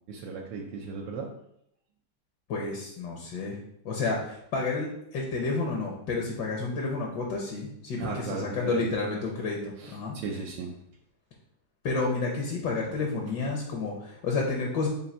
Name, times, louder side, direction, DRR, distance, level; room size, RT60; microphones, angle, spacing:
voice 1, 0.1-1.3 8.0-8.9 9.8-10.7, right 4 dB, 80° right, -1 dB, 1.3 m, -36 dB
voice 2, 2.5-3.6 3.8-10.2 11.8-14.9, left 3 dB, 70° left, -1 dB, 1.3 m, -30 dB
3.9 x 2.6 x 4.2 m, 0.75 s
omnidirectional pair, 2.0 m